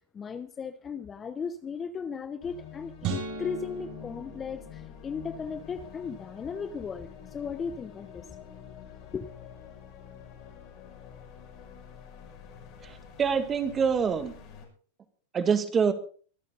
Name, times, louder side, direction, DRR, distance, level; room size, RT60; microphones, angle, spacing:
voice 1, 0.1-8.3 9.1-9.3, left 6 dB, 20° left, 0.8 m, -36 dB
sound 1, 2.4-14.7, left 8 dB, 45° left, 6.0 m, -47 dB
sound 2, 3.0-5.4, right 5 dB, 50° right, 5.9 m, -37 dB
voice 2, 12.8-14.3 15.3-15.9, right 6 dB, 25° right, 2.1 m, -26 dB
24.0 x 9.2 x 4.0 m
supercardioid pair, 130°, 0 cm